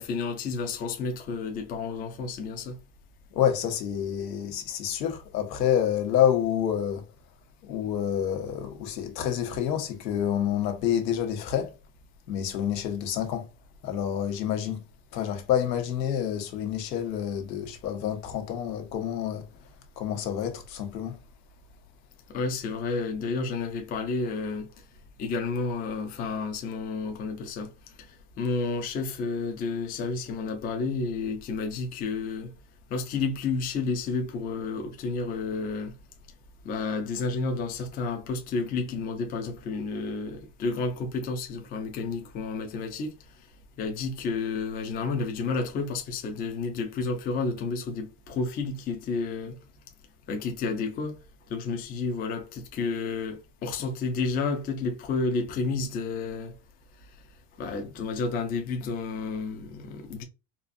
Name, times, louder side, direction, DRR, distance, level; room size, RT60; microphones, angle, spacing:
voice 1, 0.0-2.8 22.3-24.7 25.2-27.7 28.4-32.5 32.9-35.9 36.6-43.1 43.8-49.6 50.3-51.2 51.5-56.5 57.6-60.2, left 4 dB, 20° left, 0.4 m, -31 dB
voice 2, 3.3-7.0 7.6-11.8 12.3-13.5 13.8-14.8 15.1-19.5 20.0-21.2, left 9 dB, 90° left, 1.2 m, -28 dB
4.3 x 2.5 x 2.5 m
supercardioid pair, 135°, 49 cm